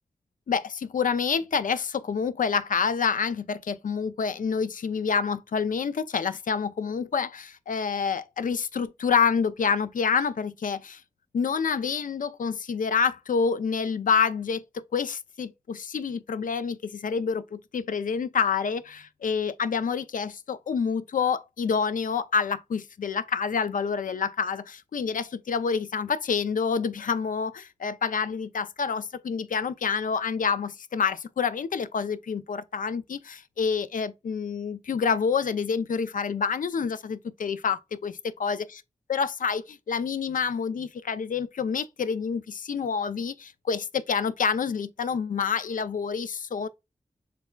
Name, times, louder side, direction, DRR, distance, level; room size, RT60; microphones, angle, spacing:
voice 1, 0.5-11.0 11.3-38.8 39.1-46.7, left 6 dB, 90° left, 0.4 m, -28 dB
6.7 x 3.3 x 2.2 m
wide cardioid pair, 80°, 13 cm